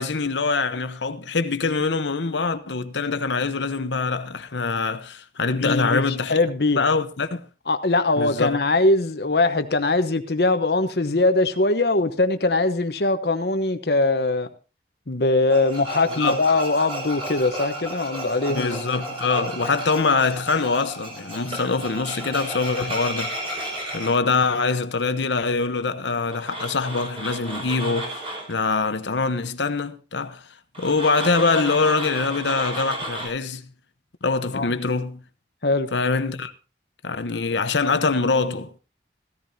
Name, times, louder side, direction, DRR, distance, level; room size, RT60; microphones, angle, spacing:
voice 1, 0.0-6.4 6.8-7.5 8.2-8.6 16.2-16.4 18.5-23.6 23.9-30.5 30.8-33.7 34.2-35.2 35.9-36.5 37.0-38.8, left 4 dB, 90° left, 1.0 m, -24 dB
voice 2, 5.6-6.8 7.7-14.5 15.1-18.7 34.5-34.7 35.6-35.9, left 2 dB, 65° left, 1.0 m, -21 dB
Tools, 15.5-24.1 26.3-28.5 30.7-33.3, right 1 dB, 30° right, 5.5 m, -33 dB
16.0 x 13.5 x 2.8 m
head